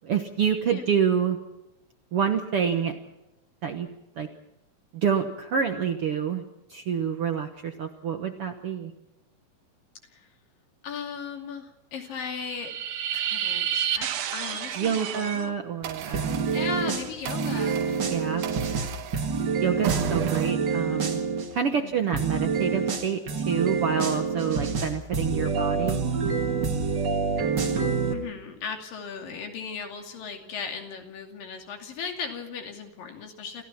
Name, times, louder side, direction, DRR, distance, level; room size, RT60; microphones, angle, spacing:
voice 1, 0.0-1.4 2.1-3.0 3.6-3.9 4.2-4.3 4.9-6.4 6.7-8.9 14.8-16.4 18.1-18.4 19.6-21.2 21.5-26.0, right 7 dB, 60° right, 6 dB, 1.5 m, -27 dB
voice 2, 10.8-12.7 13.1-15.5 16.5-17.8 21.7-22.1 28.1-33.6, left 6 dB, 75° left, 4 dB, 4.3 m, -37 dB
sound 1, 12.2-15.5 15.8-20.5, right 10 dB, 90° right, 3.2 m, -32 dB
sound 2, 16.1-21.5 22.1-28.1, right 5 dB, 40° right, 1.9 m, -27 dB
27.5 x 16.0 x 5.9 m, 0.95 s
omnidirectional pair, 4.0 m